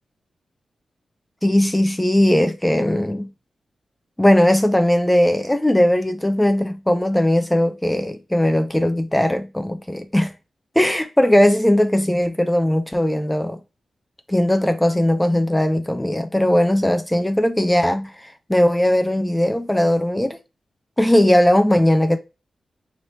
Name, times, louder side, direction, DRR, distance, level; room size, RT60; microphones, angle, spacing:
voice 1, 1.4-3.3 4.2-10.3 10.8-13.6 14.3-20.4 21.0-22.2, left 1 dB, 5° left, 0.3 m, -18 dB
3.1 x 2.8 x 2.8 m
wide cardioid pair, 140°, 0 cm